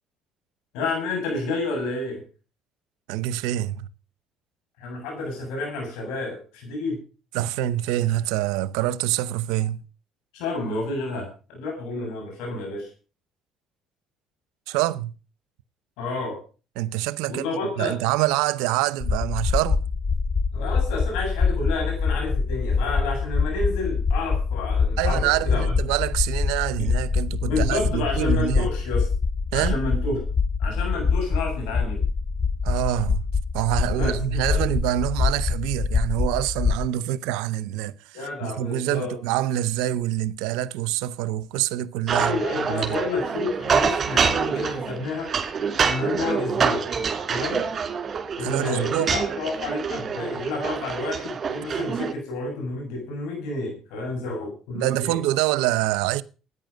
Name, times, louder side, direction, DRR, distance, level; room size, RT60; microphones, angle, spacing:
voice 1, 0.7-2.2 4.8-7.0 10.3-12.9 16.0-16.4 17.3-17.9 20.5-25.8 27.4-29.1 29.5-30.2 30.6-32.0 34.0-34.6 38.1-39.2 42.1-45.3 45.9-46.8 47.3-47.7 48.4-55.2, left 3 dB, 80° left, 7.7 m, -30 dB
voice 2, 3.1-3.9 7.3-9.8 14.7-15.1 16.8-17.4 17.8-19.8 25.0-28.7 29.5-29.8 32.6-33.3 33.5-43.0 48.4-49.1 54.7-56.2, right 14 dB, 85° right, 0.7 m, -26 dB
sound 1, 19.0-36.9, left 5 dB, 40° left, 0.8 m, -24 dB
sound 2, 42.1-52.1, right 6 dB, 45° right, 3.2 m, -26 dB
13.5 x 9.7 x 6.5 m
supercardioid pair, 65°, 0 cm